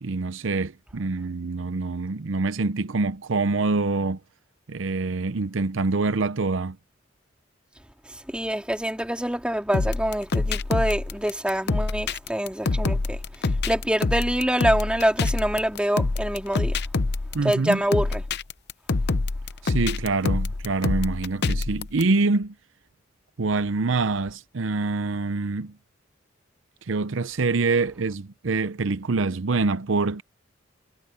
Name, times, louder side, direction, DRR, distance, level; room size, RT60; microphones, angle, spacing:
voice 1, 0.0-4.2 4.7-6.8 17.3-17.8 19.6-22.5 23.4-25.7 26.9-30.2, right 3 dB, 70° right, 0.7 m, -25 dB
voice 2, 8.0-16.8 17.4-18.2, equal, 5° right, 2.8 m, -26 dB
sound 1, 9.7-22.0, left 3 dB, 55° left, 0.7 m, -26 dB
head